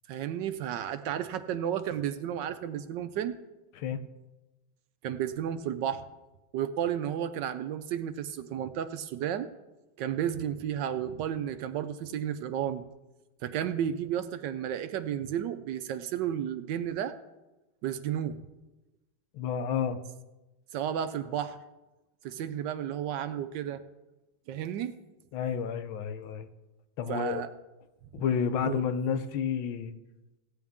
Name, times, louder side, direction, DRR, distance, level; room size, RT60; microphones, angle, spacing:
voice 1, 0.1-3.4 5.0-6.0 6.5-9.5 10.0-12.8 13.4-17.1 17.8-18.4 20.7-21.6 22.2-23.8 24.5-24.9 27.1-27.5 28.6-28.8, right 10 dB, 75° right, 11 dB, 1.1 m, -32 dB
voice 2, 19.3-20.0 25.3-26.5 27.0-27.4 28.1-29.9, left 7 dB, 80° left, 10 dB, 1.6 m, -30 dB
16.5 x 9.8 x 3.6 m, 1.0 s
omnidirectional pair, 2.2 m